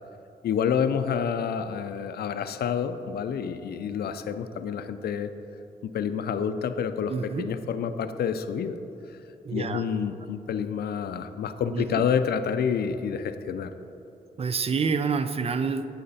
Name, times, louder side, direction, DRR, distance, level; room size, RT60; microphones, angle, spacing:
voice 1, 0.4-5.3 5.8-8.8 9.1-9.2 9.5-13.7, left 7 dB, 75° left, 11 dB, 0.4 m, -28 dB
voice 2, 7.1-7.4 9.4-9.8 11.7-12.0 14.4-15.9, right 5 dB, 35° right, 10 dB, 0.4 m, -27 dB
8.5 x 5.8 x 4.1 m, 3.0 s
cardioid pair, 80°, 17 cm